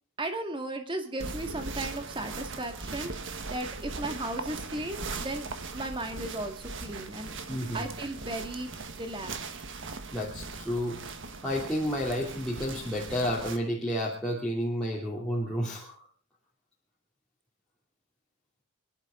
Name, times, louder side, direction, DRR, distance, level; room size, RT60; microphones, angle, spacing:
voice 1, 0.2-5.5 5.7-7.3 7.7-9.5, right 1 dB, 25° right, 5 dB, 2.1 m, -36 dB
sound 1, 1.2-13.6, right 4 dB, 60° right, 1.5 m, -39 dB
voice 2, 7.5-7.9 10.1-11.0 11.4-15.9, equal, 5° left, -6 dB, 2.8 m, -31 dB
25.5 x 11.5 x 3.9 m, 0.39 s
head